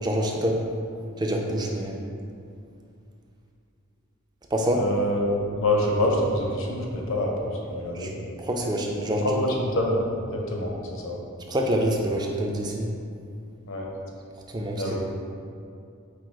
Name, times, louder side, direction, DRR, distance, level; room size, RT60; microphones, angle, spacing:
voice 1, 0.0-0.6 1.2-2.0 4.5-4.8 7.9-8.1 8.4-9.3 11.5-12.9 14.5-15.0, right 1 dB, 20° right, 1 dB, 0.3 m, -26 dB
voice 2, 4.7-8.1 9.1-10.0 10.3-11.2 13.7-13.9 14.7-15.0, left 1 dB, 60° left, -1 dB, 0.7 m, -26 dB
4.7 x 2.3 x 4.5 m, 2.4 s
head